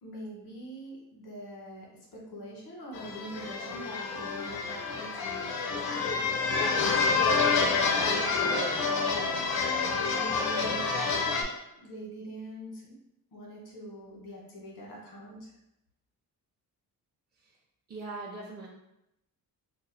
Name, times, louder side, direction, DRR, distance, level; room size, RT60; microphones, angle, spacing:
voice 1, 0.0-1.9 2.1-6.0 6.8-11.4 11.7-12.9 13.3-15.5, equal, 90° left, -3 dB, 1.4 m, -44 dB
sound 1, 2.9-11.4, left 4 dB, 75° left, 0.7 m, -28 dB
voice 2, 17.9-18.7, right 3 dB, 25° right, -3 dB, 0.5 m, -40 dB
2.9 x 2.4 x 4.0 m, 0.86 s
wide cardioid pair, 135°, 38 cm